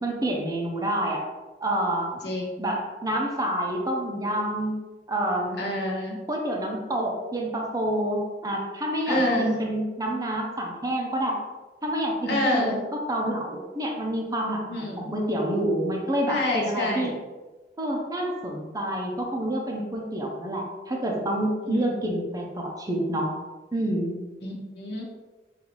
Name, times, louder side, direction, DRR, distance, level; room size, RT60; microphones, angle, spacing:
voice 1, 0.0-1.2 1.6-2.1 2.6-4.8 5.1-5.6 6.3-11.4 11.8-12.8 13.1-17.1 17.8-23.3 23.7-24.2, right 1 dB, 20° right, 0 dB, 0.6 m, -28 dB
voice 2, 2.2-2.6 5.6-6.2 9.1-9.6 12.3-12.9 14.7-15.1 16.3-17.1 21.6-21.9 24.4-25.0, left 1 dB, 65° left, -2 dB, 1.0 m, -27 dB
4.0 x 2.6 x 4.5 m, 1.2 s
head